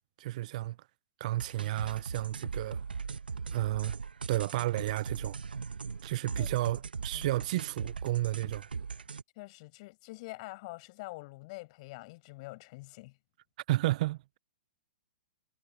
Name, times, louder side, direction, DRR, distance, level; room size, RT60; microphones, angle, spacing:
voice 1, 0.2-0.8 1.2-2.8 3.5-4.0 4.3-5.4 6.0-8.6 13.7-14.4, right 16 dB, 55° right, 0.5 m, -32 dB
sound 1, 1.4-9.2, right 5 dB, 85° right, 1.3 m, -39 dB
voice 2, 9.4-13.2, left 23 dB, 45° left, 6.4 m, -45 dB
hypercardioid pair, 120°, 5 cm